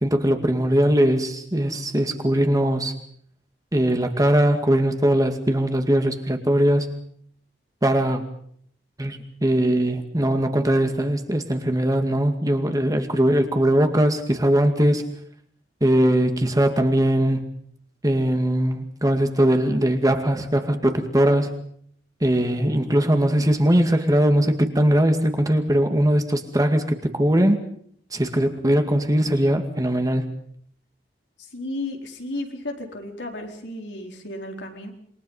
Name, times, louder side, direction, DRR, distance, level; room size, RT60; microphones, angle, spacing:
voice 1, 0.0-3.0 3.7-6.9 7.8-8.2 9.0-15.0 15.8-17.5 18.0-21.5 22.2-27.6 28.1-30.3, right 1 dB, 20° right, 6 dB, 2.2 m, -20 dB
voice 2, 31.4-34.9, left 1 dB, 85° left, 2 dB, 4.2 m, -33 dB
27.5 x 22.5 x 5.6 m, 0.63 s
head